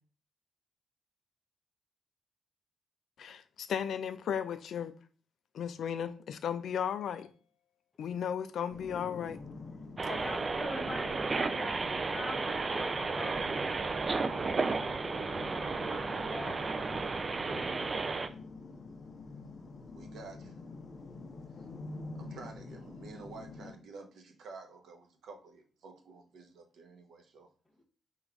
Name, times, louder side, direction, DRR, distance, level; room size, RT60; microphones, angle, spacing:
voice 1, 3.2-4.9 5.5-7.3 8.0-9.4, left 8 dB, 70° left, 0.3 m, -35 dB
sound 1, 8.7-23.7, left 3 dB, 45° left, 0.7 m, -47 dB
sound 2, 10.0-18.3, right 4 dB, 30° right, 0.3 m, -33 dB
voice 2, 10.1-13.6 15.5-16.6 17.5-18.0, left 1 dB, 10° left, 0.8 m, -43 dB
voice 3, 19.9-20.6 21.5-21.7 22.1-27.5, right 4 dB, 80° right, 0.8 m, -50 dB
3.8 x 2.4 x 4.5 m
wide cardioid pair, 140°, 0 cm